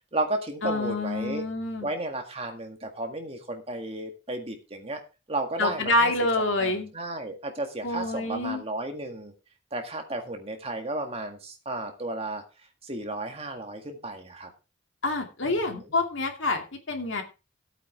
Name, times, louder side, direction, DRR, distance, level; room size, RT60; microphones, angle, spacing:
voice 1, 0.1-1.4 1.8-5.0 5.3-6.1 6.6-9.3 9.7-12.4 12.8-14.5 15.4-15.9, right 2 dB, 30° right, 4 dB, 1.8 m, -33 dB
voice 2, 0.6-1.9 5.6-6.9 7.8-8.6 15.0-17.2, left 2 dB, 70° left, 3 dB, 2.4 m, -27 dB
14.5 x 8.5 x 3.5 m, 0.29 s
head